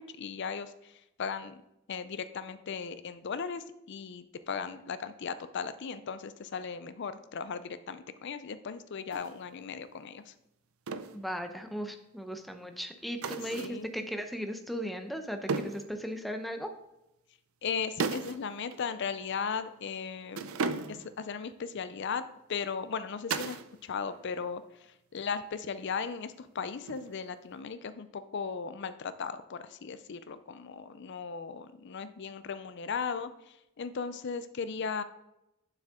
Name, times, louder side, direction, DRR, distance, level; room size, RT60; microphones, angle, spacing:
voice 1, 0.0-1.6 1.9-10.3 13.6-13.9 17.6-20.5 20.9-35.0, left 6 dB, 55° left, 12 dB, 0.5 m, -37 dB
sound 1, 9.1-9.3 10.9-11.2 13.2-13.8 15.5-15.9 18.0-18.4 18.7-18.8 20.3-21.2 23.3-23.7 24.0-24.5 26.9-27.3, right 4 dB, 85° right, 0.6 m, -35 dB
voice 2, 11.1-16.7, equal, ahead, 6 dB, 0.7 m, -37 dB
9.0 x 7.5 x 3.6 m, 0.87 s
head